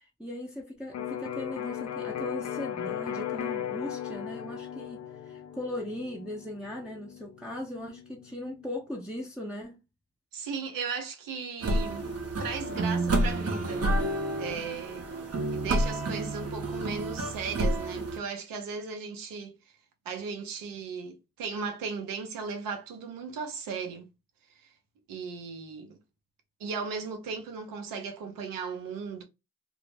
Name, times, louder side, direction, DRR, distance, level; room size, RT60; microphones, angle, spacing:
voice 1, 0.0-9.8, left 1 dB, 5° right, 0.6 m, -38 dB
Electric guitar, 0.9-8.7, left 10 dB, 55° left, 0.5 m, -37 dB
voice 2, 10.3-12.1 12.4-13.9 14.4-15.0 15.5-19.5 20.0-24.1 24.5-24.7 25.1-26.0 26.6-29.2, right 5 dB, 80° right, 0.6 m, -36 dB
sound 1, 11.6-18.2, right 2 dB, 50° right, 0.8 m, -29 dB
2.1 x 2.0 x 3.2 m
supercardioid pair, 40°, 33 cm